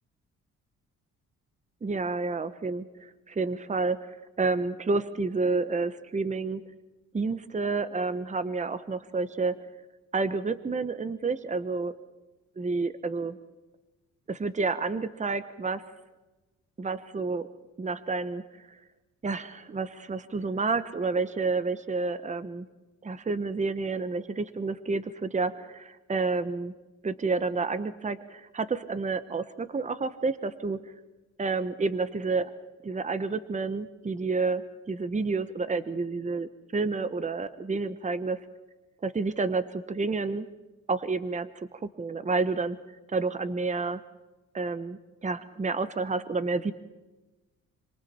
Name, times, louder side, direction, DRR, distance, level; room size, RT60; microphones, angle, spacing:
voice 1, 1.8-6.6 7.1-9.5 10.1-11.9 12.6-13.4 14.3-15.8 16.8-17.5 17.8-18.8 19.2-22.7 23.0-26.7 27.0-30.8 31.4-32.5 32.8-38.4 39.0-40.5 40.9-42.8 43.1-44.0 44.5-46.7, right 4 dB, 25° right, 13 dB, 1.2 m, -30 dB
27.0 x 25.5 x 4.4 m, 1.1 s
cardioid pair, 90°, 30 cm